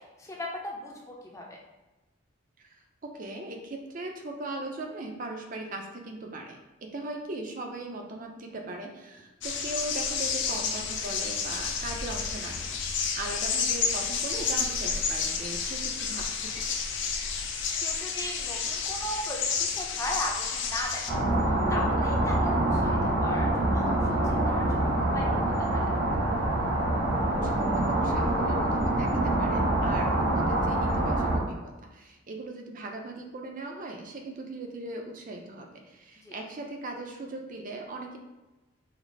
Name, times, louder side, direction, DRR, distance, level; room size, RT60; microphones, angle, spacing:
voice 1, 0.2-1.6 17.5-21.2 21.7-25.8 36.2-36.4, left 1 dB, 15° left, -2 dB, 0.6 m, -37 dB
voice 2, 3.0-6.6 6.9-16.7 27.4-38.2, right 2 dB, 40° right, 2 dB, 0.5 m, -39 dB
sound 1, 9.4-21.1, left 6 dB, 60° left, 0.4 m, -30 dB
sound 2, 21.1-31.4, right 1 dB, 90° right, 1.0 m, -25 dB
5.0 x 2.0 x 4.0 m, 1.1 s
head